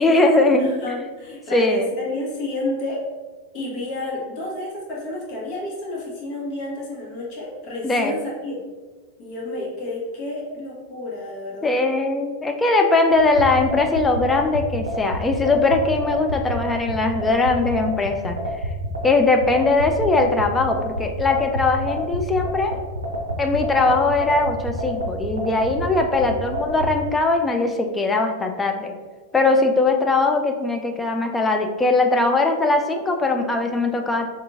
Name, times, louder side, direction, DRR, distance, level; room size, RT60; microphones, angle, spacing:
voice 1, 0.0-0.7 1.5-1.9 7.8-8.1 11.6-18.4 19.0-22.7 23.4-29.0 29.3-34.3, left 3 dB, 15° left, 4 dB, 0.4 m, -20 dB
voice 2, 0.6-3.0 3.5-8.6 9.2-11.9, left 2 dB, 40° left, -4 dB, 1.0 m, -30 dB
sound 1, 13.1-26.9, equal, 85° right, 0.5 m, -28 dB
2.8 x 2.4 x 3.6 m, 1.3 s
figure-of-eight pair, 90°, 0 cm